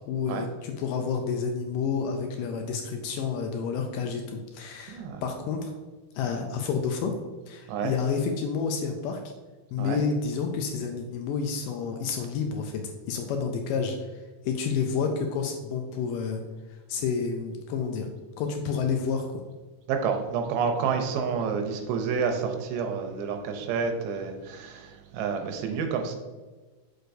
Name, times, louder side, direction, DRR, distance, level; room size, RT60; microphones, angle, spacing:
voice 1, 0.0-5.7 6.2-7.1 7.5-9.2 9.7-14.1 14.4-16.4 16.9-18.1 18.4-19.4, left 5 dB, 85° left, 4 dB, 1.9 m, -29 dB
voice 2, 4.9-5.2 7.7-7.9 9.8-10.0 19.9-26.1, right 6 dB, 85° right, 4 dB, 2.6 m, -29 dB
6.4 x 6.4 x 2.6 m, 1.3 s
omnidirectional pair, 4.4 m